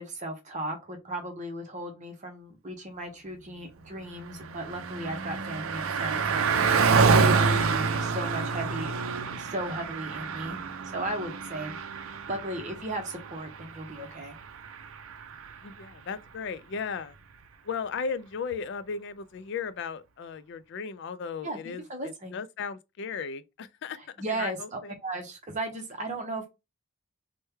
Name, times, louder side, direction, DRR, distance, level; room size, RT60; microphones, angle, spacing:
voice 1, 0.0-6.5 6.8-8.9 9.3-11.8 12.0-14.4 21.4-22.3 24.2-26.5, right 1 dB, 35° right, 0.7 m, -36 dB
Car passing by, 3.9-15.7, right 5 dB, 70° right, 0.4 m, -28 dB
voice 2, 15.6-17.2 17.6-24.0 24.3-24.9, left 5 dB, 55° left, 0.3 m, -36 dB
3.1 x 2.2 x 3.2 m
head